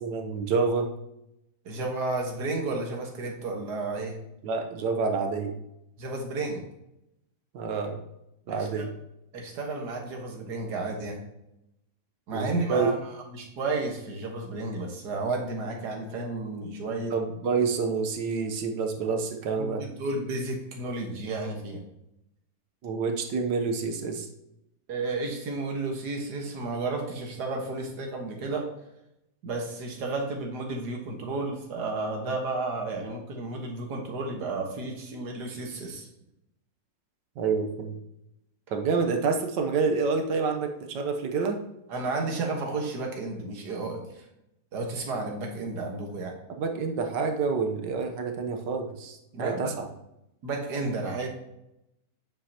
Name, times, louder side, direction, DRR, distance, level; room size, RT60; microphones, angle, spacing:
voice 1, 0.0-0.9 4.4-5.6 7.5-8.0 8.5-8.9 12.3-12.9 17.1-19.8 22.8-24.3 37.4-37.9 38.7-41.6 46.6-49.9, right 4 dB, 85° right, 5 dB, 1.6 m, -28 dB
voice 2, 1.7-4.2 6.0-6.6 8.5-8.9 9.3-11.2 12.3-13.0 13.3-17.1 19.6-21.8 24.9-28.7 29.4-36.1 41.9-44.2 44.7-46.3 49.3-49.7 50.4-51.3, right 3 dB, 70° right, 1 dB, 2.0 m, -32 dB
8.4 x 7.5 x 2.9 m, 0.85 s
omnidirectional pair, 1.8 m